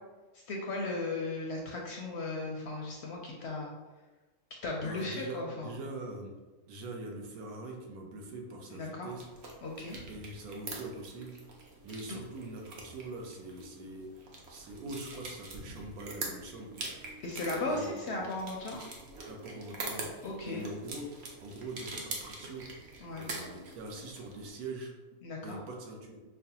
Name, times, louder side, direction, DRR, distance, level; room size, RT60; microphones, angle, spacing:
voice 1, 0.3-3.7 4.6-5.7 8.7-9.1 9.6-10.0 17.2-18.8 20.2-20.6 23.0-23.3 25.2-25.6, left 2 dB, 65° left, -1 dB, 0.7 m, -36 dB
voice 2, 4.7-6.3 6.7-9.3 10.1-11.3 11.8-14.1 14.5-16.7 17.7-18.3 19.3-20.1 20.4-21.1 21.4-22.6 23.1-24.9 25.4-26.2, right 2 dB, 85° right, 1 dB, 1.2 m, -43 dB
sound 1, 9.1-24.5, right 3 dB, 55° right, 0.8 m, -44 dB
5.5 x 2.1 x 2.8 m, 1.2 s
omnidirectional pair, 1.5 m